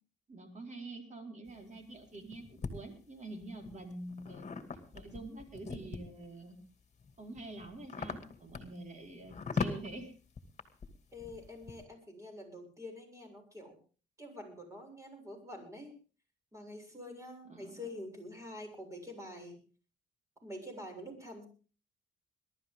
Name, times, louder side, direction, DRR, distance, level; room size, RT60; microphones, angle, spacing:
voice 1, 0.3-4.5 4.9-6.6 7.2-10.1 17.5-17.8, right 2 dB, 35° right, 3 dB, 4.7 m, -46 dB
sound 1, 1.5-2.7 3.4-6.3 6.8-11.8, left 5 dB, 35° left, 2.3 m, -40 dB
voice 2, 11.1-13.8 14.2-15.9 16.5-19.6 20.4-21.5, left 1 dB, 15° right, 3 dB, 7.1 m, -46 dB
21.5 x 12.5 x 3.7 m, 0.37 s
cardioid pair, 90°, 20 cm